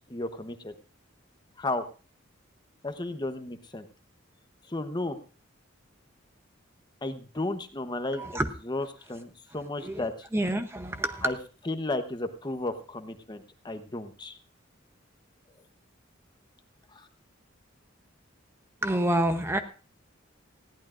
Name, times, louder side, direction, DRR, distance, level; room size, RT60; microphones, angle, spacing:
voice 1, 0.1-0.7 1.6-1.8 2.8-3.9 4.7-5.2 7.0-8.4 8.7-10.3 11.2-11.4 11.7-14.4 16.9-17.1, left 2 dB, 20° left, 8 dB, 0.9 m, -33 dB
voice 2, 8.2-8.5 9.8-11.3 18.8-19.6, right 1 dB, 15° right, 8 dB, 0.7 m, -28 dB
19.5 x 15.0 x 2.5 m, 0.36 s
head